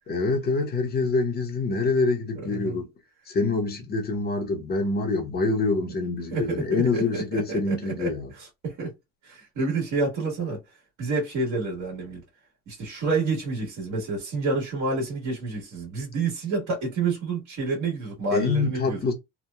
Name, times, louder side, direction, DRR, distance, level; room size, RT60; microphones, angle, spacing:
voice 1, 0.1-2.9 3.3-8.3 18.3-19.1, left 3 dB, 30° left, 0.7 m, -25 dB
voice 2, 2.3-2.8 6.3-8.9 9.2-10.6 11.0-12.2 12.7-19.0, right 3 dB, 60° right, 1.4 m, -29 dB
3.0 x 2.1 x 2.2 m
cardioid pair, 160°, 32 cm